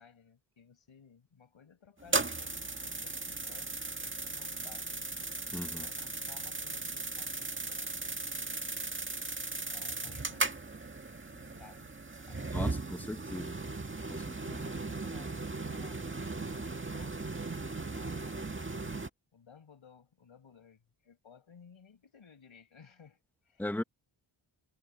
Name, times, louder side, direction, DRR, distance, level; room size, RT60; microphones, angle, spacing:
voice 1, 0.0-5.0 5.6-8.6 9.7-10.6 11.3-11.9 12.2-12.8 14.4-17.2 17.9-18.6 19.3-23.7, left 6 dB, 70° left, 6.0 m, -58 dB
sound 1, 2.0-19.1, right 3 dB, 25° right, 1.8 m, -37 dB
voice 2, 5.5-5.8 12.5-13.6 14.1-14.4 23.6-23.8, left 1 dB, 5° left, 1.2 m, -38 dB
cardioid pair, 60°, 50 cm